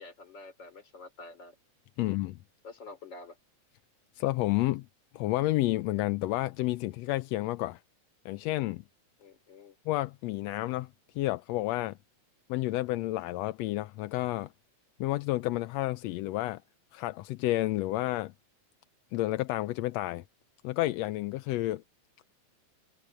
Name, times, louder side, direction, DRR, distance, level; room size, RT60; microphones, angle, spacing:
voice 1, 0.0-1.6 2.0-2.1 2.6-3.4 9.2-9.8, left 3 dB, 35° left, 4.0 m, -48 dB
voice 2, 2.0-2.4 4.2-4.9 5.1-7.8 8.2-8.8 9.9-10.9 11.1-12.0 12.5-14.5 15.0-16.6 16.9-18.3 19.1-20.2 20.6-21.8, left 17 dB, 75° left, 1.6 m, -30 dB
omnidirectional pair, 3.4 m